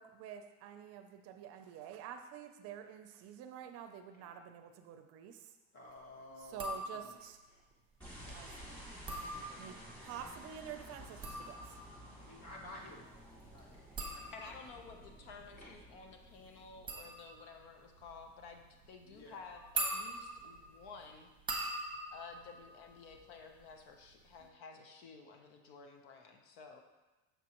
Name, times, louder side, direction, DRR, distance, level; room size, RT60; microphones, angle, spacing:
voice 1, 0.0-5.4 6.4-7.4 8.3-8.9 9.5-11.7, right 9 dB, 45° right, 7 dB, 0.5 m, -48 dB
sound 1, 4.1-4.3 5.5-5.6 6.0-6.1 6.8-7.7 8.2-9.0 10.1-10.2 11.3-11.4 12.1-12.9 13.9-14.6 15.5-16.0, left 1 dB, 25° left, 1.1 m, -62 dB
voice 2, 5.7-6.6 6.9-7.2 9.3-10.0 12.2-13.0 13.5-13.8 14.1-14.3 19.1-19.4, left 1 dB, 50° left, -1 dB, 1.5 m, -53 dB
sound 2, 6.5-7.3 8.9-10.0 10.9-23.7 23.9-24.5, right 2 dB, 15° right, 0.9 m, -44 dB
sound 3, 8.0-17.4, equal, 5° left, 2.4 m, -53 dB
voice 3, 14.3-21.3 22.1-26.8, left 5 dB, 75° left, 4 dB, 0.9 m, -53 dB
6.8 x 6.1 x 3.0 m, 1.1 s
cardioid pair, 155°, 33 cm